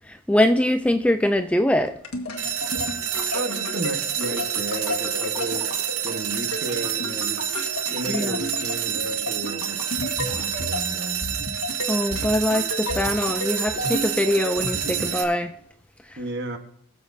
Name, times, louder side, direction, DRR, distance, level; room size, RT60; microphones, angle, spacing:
voice 1, 0.1-1.9 8.1-8.4 11.9-15.5, left 1 dB, 5° left, 0.3 m, -22 dB
sound 1, 1.8-15.6, left 2 dB, 85° left, 1.7 m, -33 dB
sound 2, 2.4-15.2, right 9 dB, 90° right, 0.9 m, -28 dB
voice 2, 3.3-5.7 6.0-7.4 7.9-11.3 16.2-16.6, right 2 dB, 50° right, 1.4 m, -33 dB
21.5 x 7.2 x 2.7 m
head